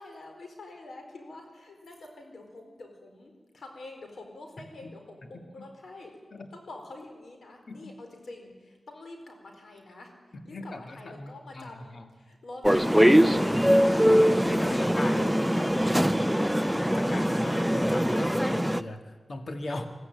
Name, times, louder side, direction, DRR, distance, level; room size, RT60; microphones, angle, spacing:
voice 1, 0.0-6.2 6.5-10.1 10.4-12.7 13.0-14.2 14.6-16.3 16.6-16.7, left 2 dB, 85° left, 3 dB, 4.4 m, -46 dB
voice 2, 5.3-5.7 6.3-6.5 7.7-7.9 10.3-12.1 14.4-15.7 16.7-19.9, left 2 dB, 65° left, 6 dB, 1.8 m, -39 dB
sound 1, 12.6-18.8, equal, ahead, 0.7 m, -22 dB
22.0 x 14.0 x 9.2 m, 1.4 s
wide cardioid pair, 65°, 0 cm